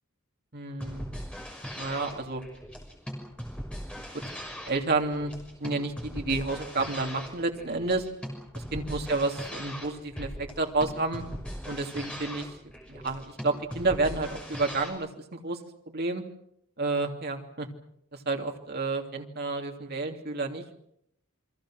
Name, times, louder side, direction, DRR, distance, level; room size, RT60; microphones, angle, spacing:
voice 1, 0.5-1.2 1.8-2.4 3.9-4.2 4.6-5.3 5.6-8.1 8.7-11.2 11.7-12.6 12.9-15.6 15.9-16.2 16.8-17.7 18.1-20.8, right 3 dB, 45° right, 3 dB, 3.0 m, -30 dB
sound 1, 0.7-14.9, equal, 5° left, 5.9 m, -39 dB
28.5 x 23.5 x 6.4 m, 0.75 s
head